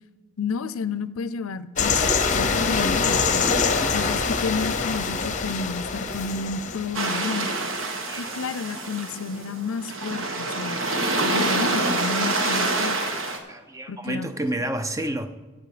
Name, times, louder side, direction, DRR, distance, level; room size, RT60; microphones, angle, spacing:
voice 1, 0.4-3.6 3.9-7.5 8.2-10.8 11.2-13.0 13.9-14.6, left 5 dB, 80° left, 0.5 m, -31 dB
sound 1, 1.8-7.0, left 4 dB, 35° left, 0.9 m, -24 dB
sound 2, 6.9-13.4, right 2 dB, 70° right, 1.3 m, -26 dB
voice 2, 13.5-15.3, right 1 dB, 15° right, 0.5 m, -29 dB
14.0 x 7.8 x 5.0 m
head